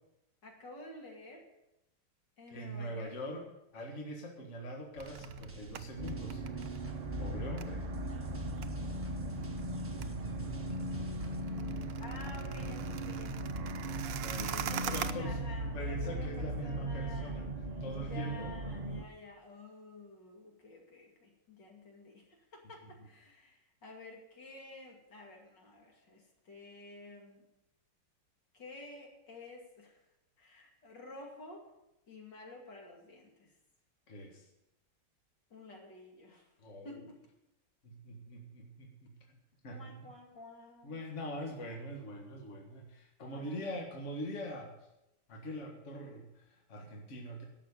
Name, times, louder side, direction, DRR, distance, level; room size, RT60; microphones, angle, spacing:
voice 1, 0.4-1.4 2.4-3.1 11.4-14.0 14.4-17.5 18.0-27.5 28.5-30.0 30.4-31.7 32.1-33.5 35.5-36.5 36.8-37.2 39.7-41.0 43.2-43.8, left 3 dB, 70° left, 0 dB, 3.1 m, -51 dB
voice 2, 2.5-3.4 3.7-6.4 7.2-7.9 14.1-15.4 15.7-17.5 17.8-18.5 34.1-34.5 36.6-37.0 37.8-39.2 39.6-40.0 40.8-44.7 45.3-47.5, equal, 40° left, 0 dB, 1.9 m, -43 dB
sound 1, 5.0-11.4, left 1 dB, 10° right, 0.9 m, -53 dB
sound 2, 5.0-15.1, right 10 dB, 80° right, 1.4 m, -44 dB
sound 3, 6.0-19.0, right 1 dB, 45° right, 0.5 m, -38 dB
11.5 x 6.7 x 8.3 m, 0.89 s
omnidirectional pair, 2.0 m